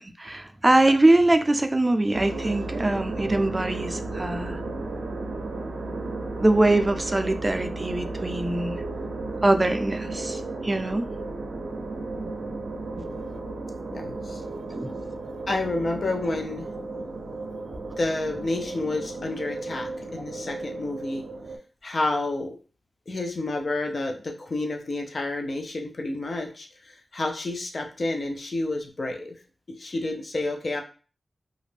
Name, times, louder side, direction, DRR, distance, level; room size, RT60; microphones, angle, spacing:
voice 1, 0.0-4.6 6.4-8.8 9.4-11.1 12.1-12.4 14.7-14.9, right 2 dB, 30° right, 8 dB, 0.4 m, -23 dB
sound 1, 2.1-21.6, right 2 dB, 90° right, 0.5 m, -34 dB
voice 2, 13.9-14.4 15.5-16.7 18.0-21.2 21.8-22.6 23.1-29.4 29.7-30.8, left 2 dB, 60° left, 2 dB, 0.5 m, -30 dB
2.4 x 2.1 x 3.2 m, 0.38 s
cardioid pair, 50°, 0 cm